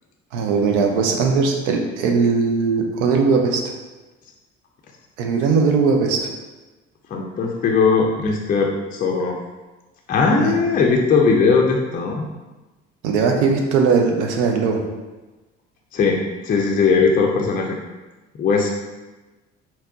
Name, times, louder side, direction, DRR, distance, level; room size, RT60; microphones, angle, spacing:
voice 1, 0.3-3.6 5.2-6.2 10.4-10.5 13.0-14.8, right 5 dB, 65° right, 2 dB, 0.7 m, -19 dB
voice 2, 7.1-9.4 10.1-12.2 15.9-16.2 16.4-17.8 18.4-18.8, left 4 dB, 25° left, 0 dB, 0.5 m, -19 dB
4.1 x 2.0 x 3.8 m, 1.2 s
figure-of-eight pair, 50°, 36 cm